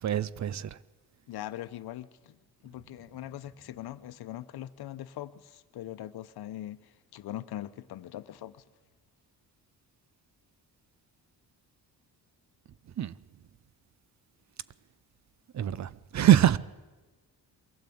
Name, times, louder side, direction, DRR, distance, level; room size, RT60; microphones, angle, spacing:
voice 1, 0.0-0.8 13.0-13.1 15.5-16.6, right 11 dB, 45° right, 0.6 m, -24 dB
voice 2, 1.3-2.4 2.6-8.6, left 13 dB, 75° left, 0.9 m, -41 dB
23.0 x 16.0 x 8.6 m
cardioid pair, 145°, 39 cm